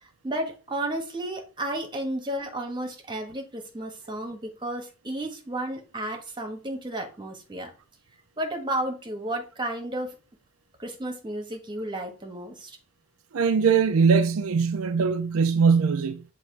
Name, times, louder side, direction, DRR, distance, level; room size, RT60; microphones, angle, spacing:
voice 1, 0.0-7.7 8.4-10.1 10.8-12.8, right 1 dB, 20° right, 1.3 m, -32 dB
voice 2, 13.3-16.2, right 5 dB, 80° right, 0.5 m, -21 dB
7.2 x 3.0 x 4.5 m
head